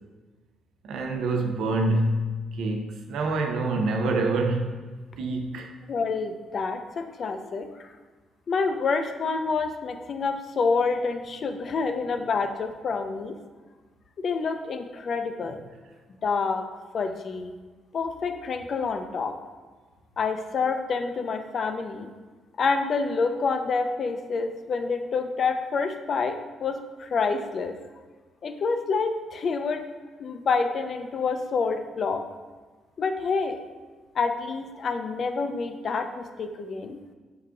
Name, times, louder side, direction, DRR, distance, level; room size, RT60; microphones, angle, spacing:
voice 1, 0.8-4.8 5.2-5.7, right 2 dB, 75° right, 4 dB, 0.5 m, -26 dB
voice 2, 5.9-7.9 8.5-13.3 14.2-15.6 16.2-16.6 16.9-17.5 17.9-19.3 20.2-22.1 22.6-26.3 26.6-27.8 28.4-29.8 30.2-32.2 33.0-33.6 34.2-37.0, left 4 dB, 50° left, 6 dB, 0.4 m, -27 dB
4.8 x 2.3 x 3.7 m, 1.4 s
cardioid pair, 90°, 0 cm